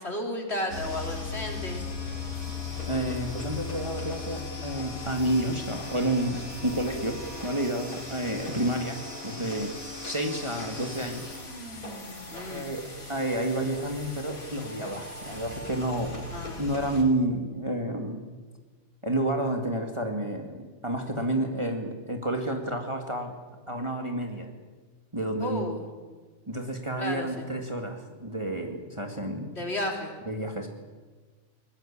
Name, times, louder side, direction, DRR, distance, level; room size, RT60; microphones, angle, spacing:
voice 1, 0.0-1.8 12.3-12.7 16.3-16.6 25.4-25.9 27.0-27.5 29.5-30.1, left 1 dB, 50° left, 2 dB, 3.9 m, -33 dB
sound 1, 0.7-17.0, left 3 dB, 80° left, 4.2 m, -38 dB
voice 2, 2.8-6.4 6.6-9.7 10.0-11.3 12.3-16.2 16.6-18.2 19.0-23.3 23.7-24.5 25.1-25.7 26.5-29.5 30.3-30.7, right 1 dB, 20° right, 3 dB, 2.2 m, -30 dB
22.0 x 20.0 x 8.7 m, 1.4 s
omnidirectional pair, 1.5 m